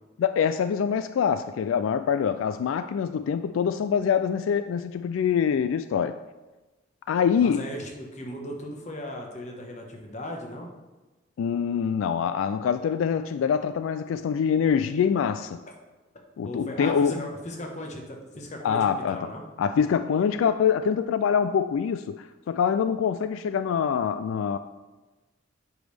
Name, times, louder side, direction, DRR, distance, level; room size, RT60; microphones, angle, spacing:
voice 1, 0.2-6.2 7.1-7.6 11.4-15.6 16.4-17.2 18.6-19.3 19.6-24.6, left 7 dB, 85° left, 11 dB, 0.3 m, -25 dB
voice 2, 7.4-10.7 16.4-19.4, left 1 dB, 35° left, 1 dB, 1.2 m, -37 dB
9.8 x 5.2 x 3.4 m, 1.2 s
head